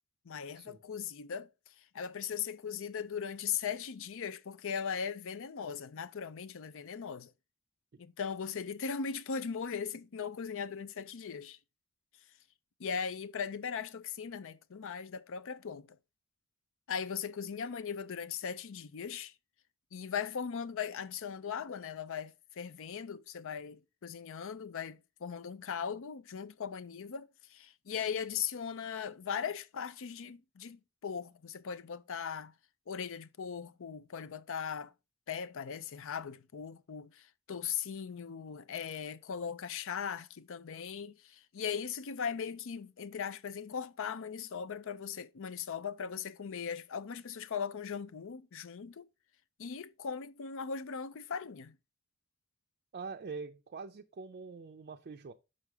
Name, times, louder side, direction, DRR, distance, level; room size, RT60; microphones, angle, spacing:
voice 1, 0.3-1.5 1.9-7.3 8.0-11.6 12.8-16.0 16.9-19.3 19.9-32.5 32.9-34.9 35.3-49.1 49.6-51.8, left 7 dB, 65° left, 0.5 m, -39 dB
voice 2, 52.9-55.3, right 4 dB, 45° right, 0.5 m, -44 dB
6.4 x 5.5 x 3.4 m
head